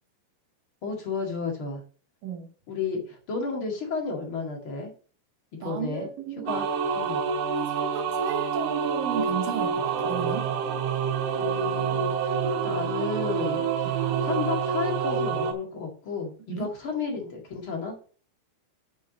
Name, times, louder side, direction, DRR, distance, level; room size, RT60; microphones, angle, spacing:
voice 1, 0.8-1.8 2.7-4.9 5.6-6.1 6.5-6.7 6.9-7.2 11.4-18.0, left 4 dB, 40° left, 2.2 m, -32 dB
voice 2, 5.6-6.5 7.6-10.5 16.5-16.7, right 7 dB, 65° right, 2.8 m, -34 dB
sound 1, 6.5-15.5, right 6 dB, 85° right, 3.3 m, -27 dB
7.1 x 6.8 x 5.0 m
omnidirectional pair, 4.5 m